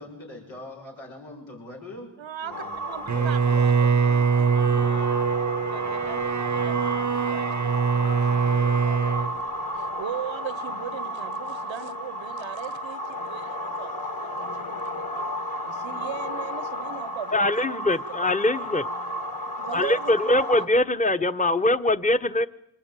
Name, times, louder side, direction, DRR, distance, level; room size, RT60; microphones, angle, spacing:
voice 1, 0.0-2.1 2.4-4.1, left 2 dB, 85° left, -2 dB, 6.8 m, -43 dB
voice 2, 2.2-5.1 5.6-9.5 9.7-15.1 15.6-18.7 19.6-20.7, right 9 dB, 85° right, 16 dB, 1.3 m, -39 dB
sound 1, 2.5-20.7, equal, 50° left, 3.3 m, -33 dB
Bowed string instrument, 3.1-9.4, right 6 dB, 40° right, 0.9 m, -23 dB
voice 3, 17.3-18.8 19.7-22.5, left 1 dB, 15° left, 10 dB, 1.2 m, -22 dB
26.0 x 20.0 x 9.2 m, 0.79 s
cardioid pair, 40°, 45 cm